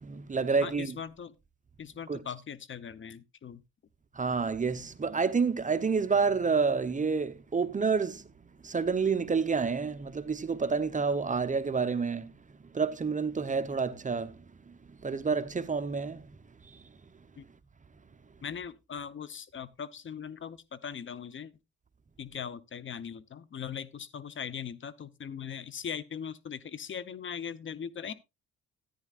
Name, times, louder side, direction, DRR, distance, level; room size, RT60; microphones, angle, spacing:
voice 1, 0.0-0.9 2.1-2.2 4.1-8.3 8.6-12.3 12.7-14.4 14.7-14.8 15.0-16.2 16.7-16.8, right 5 dB, 25° right, 0.8 m, -29 dB
voice 2, 0.6-1.3 1.8-3.6 17.4-17.5 18.4-21.5 22.2-28.1, left 7 dB, 40° left, 0.9 m, -40 dB
14.0 x 9.5 x 2.5 m
cardioid pair, 90°, 30 cm